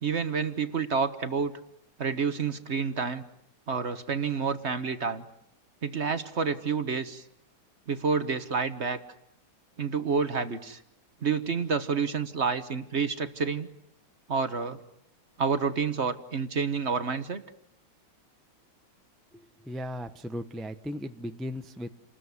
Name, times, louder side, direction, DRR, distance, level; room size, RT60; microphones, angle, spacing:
voice 1, 0.0-1.6 2.0-3.2 3.7-5.2 5.8-7.2 7.9-9.0 9.8-10.8 11.2-13.7 14.3-14.8 15.4-17.4, right 5 dB, 40° right, 10 dB, 1.2 m, -29 dB
voice 2, 19.3-21.9, equal, ahead, 8 dB, 0.3 m, -37 dB
29.5 x 20.5 x 9.7 m, 0.76 s
omnidirectional pair, 2.3 m